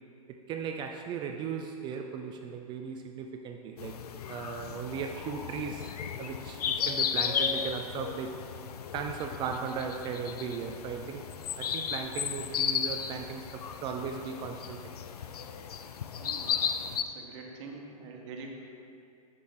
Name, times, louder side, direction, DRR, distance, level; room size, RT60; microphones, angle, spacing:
voice 1, 0.3-3.9 4.3-8.4 8.9-11.2 11.6-14.8, right 6 dB, 25° right, 4 dB, 0.3 m, -37 dB
sound 1, 3.8-17.0, left 7 dB, 85° left, 0.5 m, -34 dB
voice 2, 16.2-16.6 16.9-18.5, right 4 dB, 50° right, 1 dB, 1.3 m, -45 dB
7.5 x 6.5 x 3.6 m, 2.5 s
hypercardioid pair, 125°, 19 cm